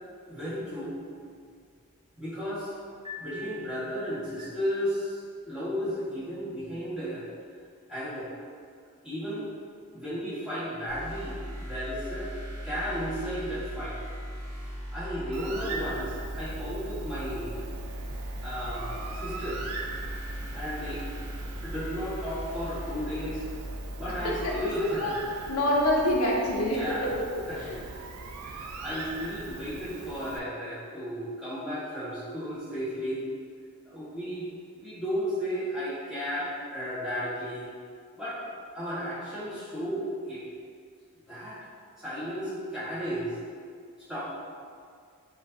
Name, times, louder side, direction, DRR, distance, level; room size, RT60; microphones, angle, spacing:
voice 1, 0.3-1.0 2.2-2.7 3.2-7.2 7.9-8.3 9.0-9.5 9.9-12.3 12.6-13.9 14.9-17.7 18.4-19.6 20.5-21.0 21.6-23.4 24.0-25.0 26.7-27.1 27.5-27.6 27.9-28.0 28.4-33.3 33.9-34.5 34.8-37.7 38.2-38.4 38.7-40.4 41.3-41.5 42.0-43.3 44.1-44.2, equal, 5° right, -13 dB, 1.3 m, -34 dB
Piano, 3.0-4.3, left 2 dB, 20° right, 0.7 m, -43 dB
sound 1, 10.9-24.6, equal, 55° right, 0.9 m, -38 dB
Bird, 15.3-30.4, right 3 dB, 80° right, 0.4 m, -41 dB
voice 2, 24.2-25.1 25.5-27.8, left 1 dB, 75° left, -2 dB, 0.6 m, -27 dB
4.9 x 2.6 x 2.7 m, 2.2 s
head